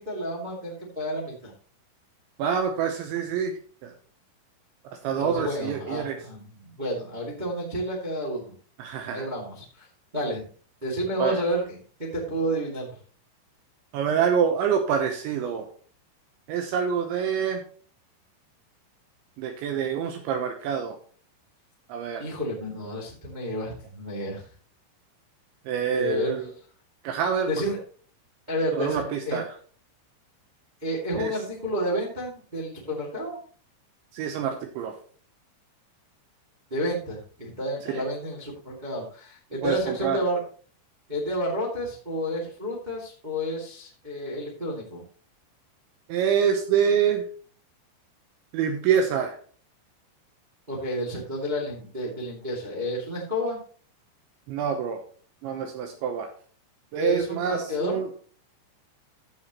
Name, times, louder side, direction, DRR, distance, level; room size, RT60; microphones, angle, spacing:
voice 1, 0.0-1.5 5.2-8.5 9.1-9.9 10.1-10.4 10.8-12.9 22.2-24.4 25.9-26.4 27.5-27.8 28.5-29.4 30.8-33.4 36.7-40.4 41.1-45.0 50.7-53.6 56.9-58.0, equal, 35° right, -3 dB, 0.7 m, -30 dB
voice 2, 2.4-3.5 3.8-3.9 5.0-6.2 8.8-9.3 11.2-11.4 13.9-15.7 16.5-17.6 19.4-21.0 21.9-22.2 25.7-26.5 27.0-27.6 28.7-29.6 31.2-31.4 34.1-35.0 37.9-38.0 39.6-40.2 46.1-47.2 48.5-49.4 54.5-55.0 55.4-56.3 56.9-58.1, right 7 dB, 75° right, 4 dB, 3.1 m, -26 dB
13.0 x 8.1 x 3.0 m, 0.43 s
omnidirectional pair, 5.7 m